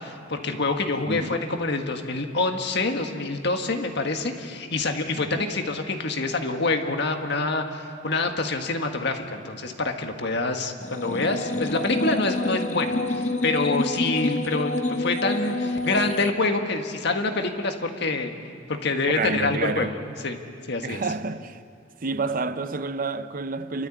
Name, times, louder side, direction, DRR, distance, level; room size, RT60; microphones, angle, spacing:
voice 1, 0.0-14.7 15.0-18.3 18.7-19.9 20.2-20.4 20.7-21.0, left 3 dB, 65° left, 1.7 m, -26 dB
voice 2, 1.0-1.4 5.1-5.5 19.2-19.9 20.8-21.6 22.0-23.9, right 4 dB, 45° right, 0.7 m, -29 dB
sound 1, 10.8-16.3, left 2 dB, 40° left, 0.8 m, -27 dB
29.5 x 13.0 x 8.5 m
head